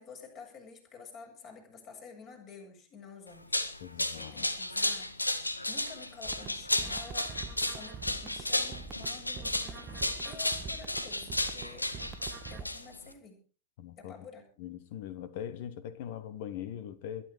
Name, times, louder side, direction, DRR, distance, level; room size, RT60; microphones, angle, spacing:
voice 1, 0.0-3.6 4.2-5.1 5.7-11.9 12.5-13.4 14.0-14.4, left 5 dB, 35° left, 7.5 m, -50 dB
sound 1, 3.3-13.1, left 1 dB, 85° left, 1.6 m, -33 dB
voice 2, 3.8-4.5 13.8-14.1 14.6-17.3, left 10 dB, 50° left, 1.5 m, -41 dB
sound 2, 6.2-12.6, right 5 dB, 25° right, 1.2 m, -45 dB
22.0 x 11.5 x 4.9 m
figure-of-eight pair, 90°, 0 cm